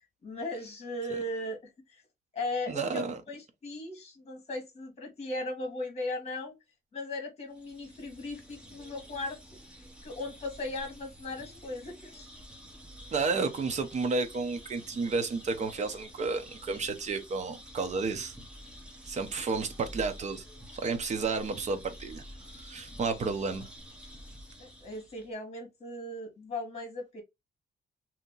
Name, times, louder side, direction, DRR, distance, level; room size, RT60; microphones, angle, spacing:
voice 1, 0.2-2.0 2.3-6.5 6.9-9.6 10.0-12.3 24.6-27.2, left 2 dB, 35° left, 1.4 m, -37 dB
voice 2, 2.7-3.2 13.1-18.3 19.1-20.4 20.7-22.2 22.6-23.7, right 4 dB, 40° right, 0.7 m, -31 dB
sound 1, 7.5-25.3, equal, 5° right, 0.8 m, -49 dB
2.9 x 2.7 x 3.8 m
wide cardioid pair, 160°, 18 cm